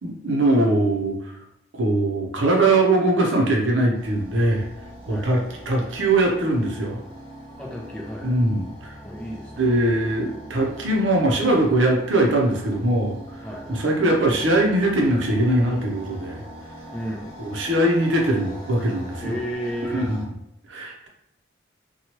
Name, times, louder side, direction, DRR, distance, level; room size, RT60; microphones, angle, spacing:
voice 1, 0.0-1.4 1.7-4.7 5.1-5.4 5.7-7.0 8.2-9.0 9.6-13.2 13.7-16.4 17.4-19.3 19.9-20.2 20.7-21.1, right 1 dB, 75° right, 0 dB, 0.6 m, -21 dB
sound 1, 3.9-20.3, equal, 20° left, 1.0 m, -42 dB
voice 2, 7.6-8.4 9.0-9.7 13.4-13.8 16.9-17.3 19.2-20.1, equal, 5° left, -2 dB, 0.4 m, -32 dB
2.9 x 2.3 x 2.9 m, 0.78 s
head